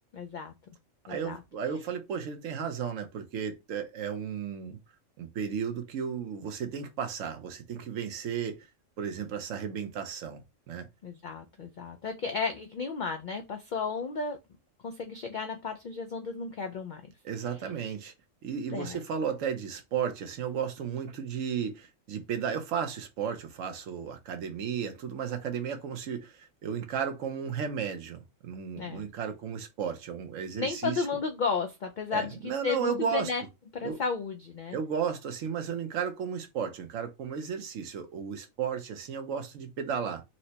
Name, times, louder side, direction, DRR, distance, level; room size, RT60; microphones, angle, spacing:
voice 1, 0.1-0.5 1.1-1.4 11.0-14.4 14.8-17.0 18.7-19.0 28.8-29.1 30.6-33.4 33.7-34.8, left 5 dB, 85° left, 0.4 m, -33 dB
voice 2, 1.1-4.8 5.2-8.7 9.0-10.4 10.7-10.9 17.2-18.1 18.4-31.0 32.1-33.3 33.8-34.0 34.7-40.2, right 7 dB, 70° right, 1.1 m, -34 dB
4.3 x 2.1 x 2.7 m
omnidirectional pair, 1.4 m